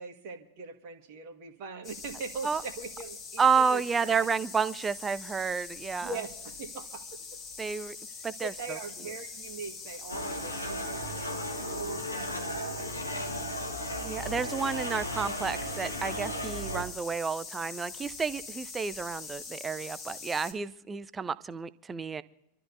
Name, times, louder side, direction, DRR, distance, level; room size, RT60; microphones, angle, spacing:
voice 1, 0.0-4.3 6.0-7.0 8.1-13.8, right 4 dB, 45° right, 5 dB, 1.7 m, -42 dB
sound 1, 1.8-20.5, left 5 dB, 30° left, 2.4 m, -43 dB
voice 2, 3.4-6.1 7.6-8.0 8.2-8.8 14.0-22.2, right 5 dB, 15° right, 16 dB, 0.5 m, -30 dB
sound 2, 10.1-16.8, equal, 85° left, 1.6 m, -35 dB
26.5 x 13.0 x 2.7 m, 0.81 s
figure-of-eight pair, 90°, 0 cm